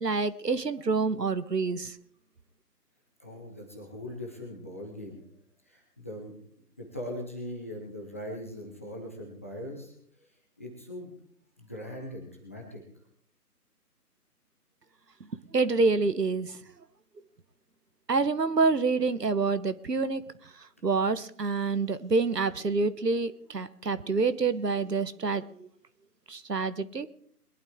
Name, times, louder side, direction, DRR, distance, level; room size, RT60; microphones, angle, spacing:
voice 1, 0.0-1.9 15.5-16.6 18.1-20.2 20.8-25.7 26.3-27.1, right 4 dB, 90° right, 14 dB, 1.3 m, -27 dB
voice 2, 3.2-5.2 5.7-6.3 6.8-9.9 10.6-11.1 11.6-12.8, left 1 dB, 10° left, 0 dB, 0.8 m, -40 dB
21.5 x 11.5 x 3.6 m, 0.63 s
figure-of-eight pair, 155°, 47 cm